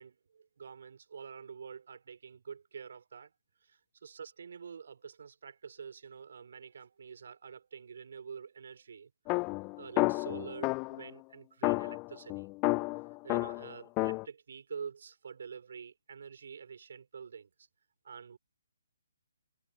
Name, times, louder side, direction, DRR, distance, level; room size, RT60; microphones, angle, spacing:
voice 1, 0.0-3.3 3.6-9.1 9.8-12.5 12.9-17.5 18.0-18.4, right 6 dB, 55° right, 3.6 m, -47 dB
sound 1, 9.3-11.1 11.6-14.2, left 27 dB, 25° left, 0.3 m, -31 dB
figure-of-eight pair, 140°, 0 cm